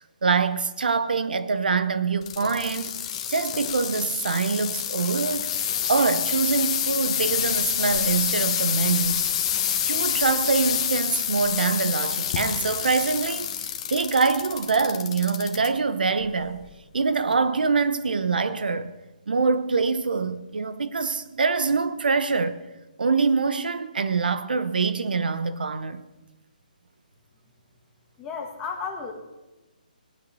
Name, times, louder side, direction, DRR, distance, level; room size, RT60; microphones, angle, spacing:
voice 1, 0.2-2.9 3.3-5.5 5.9-9.3 9.8-13.5 13.9-16.7 16.9-18.9 19.3-22.6 23.0-26.0, right 4 dB, 75° right, 1.0 m, -24 dB
sound 1, 2.2-15.7 16.2-16.7 17.3-17.4, left 9 dB, 35° left, 1.5 m, -27 dB
voice 2, 28.2-29.1, left 5 dB, 10° left, 1.7 m, -33 dB
20.5 x 8.8 x 5.6 m
hypercardioid pair, 160°, 5 cm